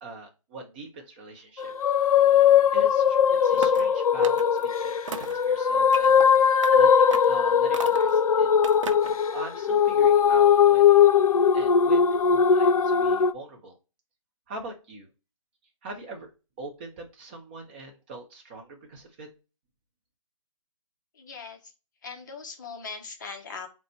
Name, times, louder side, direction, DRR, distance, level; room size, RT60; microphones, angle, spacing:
voice 1, 0.0-1.7 2.7-4.5 4.8-6.2 6.7-8.5 9.3-11.0 11.5-13.8 14.5-15.1 15.8-16.3 16.6-19.3, right 2 dB, 20° right, 2 dB, 0.7 m, -42 dB
sound 1, 1.6-13.3, left 7 dB, 80° left, 0.4 m, -20 dB
sound 2, 3.5-3.9 4.2-4.7 5.1-5.4 5.9-6.3 6.6-6.8 7.1-7.4 7.7-8.2 8.6-9.2, right 6 dB, 60° right, 0.5 m, -37 dB
voice 2, 21.1-21.7 22.0-23.7, left 5 dB, 35° left, 4 dB, 0.7 m, -40 dB
4.1 x 2.1 x 4.2 m, 0.30 s
hypercardioid pair, 165°, 18 cm